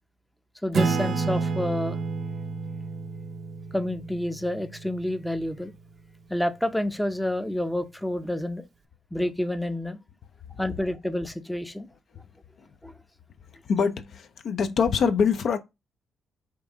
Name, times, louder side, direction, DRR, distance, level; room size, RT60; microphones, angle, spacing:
voice 1, 0.6-2.0 3.7-5.7 6.3-8.6 9.1-10.0 10.6-11.9 12.8-12.9, left 1 dB, 5° left, 0.5 m, -29 dB
Acoustic guitar / Strum, 0.7-5.7, right 4 dB, 55° right, 0.6 m, -30 dB
voice 2, 13.7-15.6, left 6 dB, 60° left, 0.5 m, -24 dB
5.2 x 2.6 x 3.5 m
cardioid pair, 90°, 0 cm